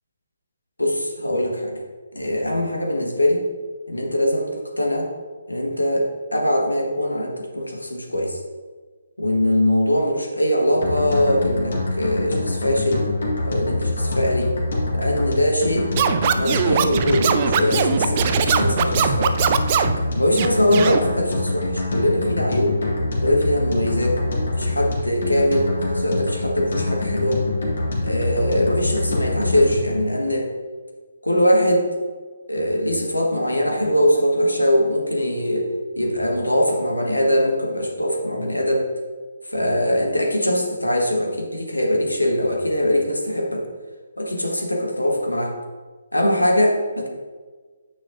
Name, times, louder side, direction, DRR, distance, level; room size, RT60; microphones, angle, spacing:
voice 1, 0.8-1.8 2.1-3.4 3.9-5.1 5.5-8.4 9.2-13.1 13.4-14.5 14.9-15.9 16.4-19.4 20.1-22.8 23.2-24.2 24.6-27.5 28.0-30.5 31.2-32.0 32.5-35.7 36.0-38.9 39.5-43.6 44.2-45.5 46.1-47.1, left 1 dB, 85° left, 1 dB, 1.3 m, -22 dB
sound 1, 10.8-30.0, left 2 dB, 60° left, 1.8 m, -25 dB
Scratching (performance technique), 16.0-20.0 20.3-21.0, right 8 dB, 35° right, 0.4 m, -21 dB
9.1 x 7.1 x 2.5 m, 1.4 s
figure-of-eight pair, 140°, 0 cm